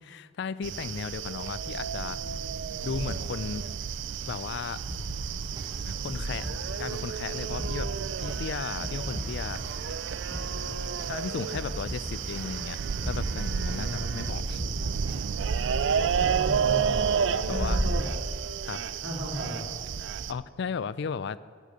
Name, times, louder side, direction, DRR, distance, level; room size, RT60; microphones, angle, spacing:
voice 1, 0.0-2.2 2.8-3.7 4.3-4.8 5.9-6.5 6.8-7.9 8.2-9.6 11.1-12.8 13.1-14.6 17.5-17.8 18.7-18.8 20.3-21.5, left 6 dB, 65° left, 17 dB, 0.4 m, -35 dB
sound 1, 0.6-20.3, right 6 dB, 70° right, 0.4 m, -31 dB
sound 2, 2.8-17.9, right 1 dB, 50° right, 1.4 m, -42 dB
sound 3, 4.9-5.6 6.1-7.0 7.5-8.4 8.8-9.7 10.2-11.1 11.5-12.4 12.9-13.8 14.2-15.1 15.6-15.7, equal, 20° right, 3.1 m, -37 dB
voice 2, 10.5-11.1 13.6-14.2 16.1-17.1 17.5-18.1 19.0-19.7, equal, 90° right, -3 dB, 3.5 m, -37 dB
10.0 x 6.6 x 8.5 m, 2.1 s
head